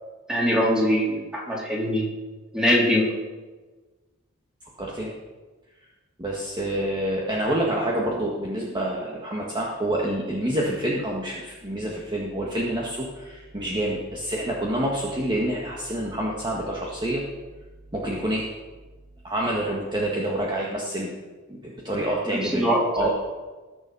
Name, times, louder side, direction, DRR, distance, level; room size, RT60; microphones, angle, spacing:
voice 1, 0.3-2.0 2.5-3.0 22.3-23.1, equal, 5° right, -4 dB, 3.6 m, -22 dB
voice 2, 4.8-5.1 6.2-17.2 17.9-18.5 19.2-21.1 21.5-23.1, right 1 dB, 20° right, -3 dB, 1.7 m, -27 dB
20.0 x 7.1 x 5.5 m, 1.3 s
head